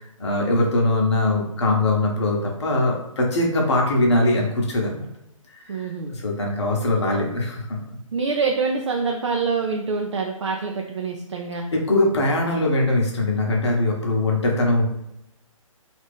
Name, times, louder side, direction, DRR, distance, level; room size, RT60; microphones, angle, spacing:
voice 1, 0.0-5.1 5.6-7.8 11.7-14.9, left 2 dB, 55° left, 0 dB, 0.9 m, -22 dB
voice 2, 5.7-6.1 8.1-11.6, right 4 dB, 55° right, 1 dB, 0.4 m, -25 dB
2.8 x 2.5 x 3.4 m, 0.85 s
figure-of-eight pair, 135°, 18 cm